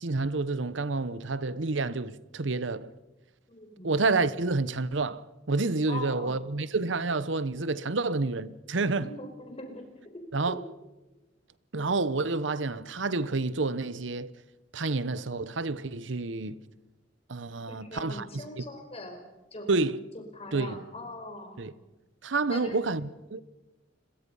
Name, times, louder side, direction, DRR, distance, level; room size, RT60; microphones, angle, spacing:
voice 1, 0.0-2.9 3.8-9.1 10.3-10.6 11.7-14.3 14.7-16.6 17.3-18.6 19.7-20.0 20.5-20.8 21.6-21.7 22.2-23.4, right 3 dB, 75° right, 0.9 m, -29 dB
voice 2, 3.5-3.9 5.9-6.3 8.9-9.8 10.5-10.6 17.7-19.2 19.5-19.7 20.1-21.6 22.5-22.8, left 1 dB, 35° left, 5.0 m, -41 dB
29.5 x 22.0 x 5.5 m
head